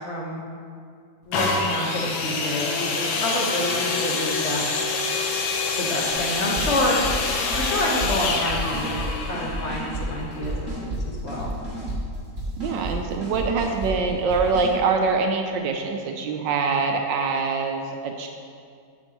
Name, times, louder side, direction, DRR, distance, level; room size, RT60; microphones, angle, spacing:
voice 1, 0.1-0.4 1.3-4.8 5.8-7.0 7.5-11.5, left 1 dB, 40° left, -3 dB, 1.2 m, -28 dB
sound 1, 1.3-11.0 11.7-11.8, left 4 dB, 75° left, 1.6 m, -27 dB
sound 2, 6.1-6.2 6.6-7.1 7.4-8.1 8.4-9.1 9.3-10.0 10.3-12.0 12.4-12.9 13.2-13.9 14.3-14.7, right 2 dB, 40° right, 2.5 m, -32 dB
voice 2, 12.6-18.3, right 4 dB, 75° right, 3 dB, 1.2 m, -24 dB
8.7 x 8.0 x 3.0 m, 2.2 s
omnidirectional pair, 2.2 m